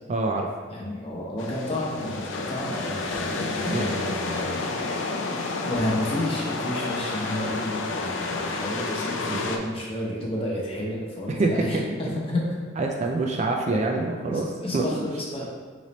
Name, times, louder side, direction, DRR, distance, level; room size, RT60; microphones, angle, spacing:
voice 1, 0.1-0.5 3.6-4.0 9.3-9.4 11.3-11.8 12.8-14.5 14.7-15.0, right 3 dB, 35° right, 1 dB, 0.3 m, -26 dB
voice 2, 0.7-4.6 5.6-12.4 14.3-15.4, left 1 dB, 30° left, -4 dB, 0.8 m, -31 dB
sound 1, 1.4-9.6, left 3 dB, 80° left, 0.5 m, -30 dB
3.9 x 3.1 x 4.1 m, 1.5 s
head